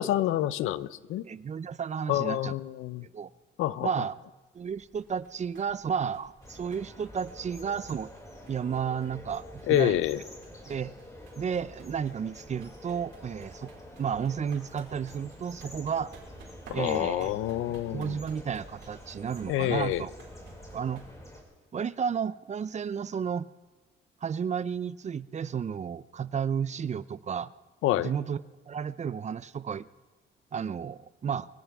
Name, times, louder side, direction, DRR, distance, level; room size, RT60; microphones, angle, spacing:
voice 1, 0.0-1.2 2.1-3.1 3.6-3.9 9.7-10.2 16.7-18.2 19.5-20.0 27.8-28.1, left 14 dB, 90° left, 16 dB, 0.6 m, -27 dB
voice 2, 1.2-2.5 3.0-3.3 3.8-4.1 4.5-8.1 8.5-10.0 10.7-10.9 11.4-13.7 14.0-16.1 16.7-17.3 17.9-20.1 20.7-21.0 21.7-23.5 24.2-27.5 27.9-29.9 30.5-31.5, right 7 dB, 35° right, 17 dB, 0.5 m, -32 dB
sound 1, 4.5-21.2, right 3 dB, 70° right, 4.9 m, -56 dB
sound 2, 6.4-21.4, equal, 15° left, 5.6 m, -48 dB
23.5 x 16.5 x 3.6 m, 1.3 s
cardioid pair, 90°, 20 cm